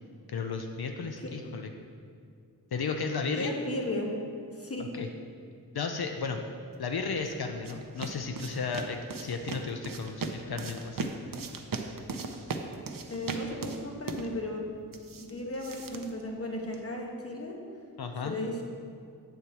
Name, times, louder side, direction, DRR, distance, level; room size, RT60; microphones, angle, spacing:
voice 1, 0.3-1.7 2.7-3.5 4.9-5.1 5.7-6.4 6.8-11.1 18.0-18.4, left 4 dB, 75° left, 5 dB, 0.6 m, -34 dB
voice 2, 3.3-4.1 4.5-4.9 13.1-14.6 15.2-17.6 18.2-18.6, left 1 dB, 40° left, 0 dB, 1.2 m, -35 dB
sound 1, 6.9-16.9, right 4 dB, 60° right, 0.6 m, -39 dB
7.9 x 4.4 x 6.7 m, 2.3 s
wide cardioid pair, 70°, 38 cm